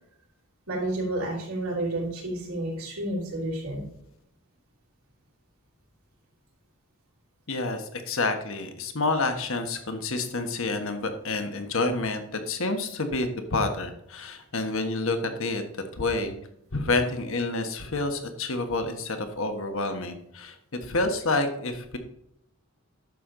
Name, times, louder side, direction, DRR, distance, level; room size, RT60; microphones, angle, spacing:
voice 1, 0.7-3.8, right 1 dB, 80° right, -9 dB, 3.7 m, -30 dB
voice 2, 7.5-15.6 15.9-16.4 16.7-22.0, left 2 dB, 65° left, 7 dB, 1.4 m, -28 dB
11.0 x 7.2 x 3.9 m, 0.76 s
head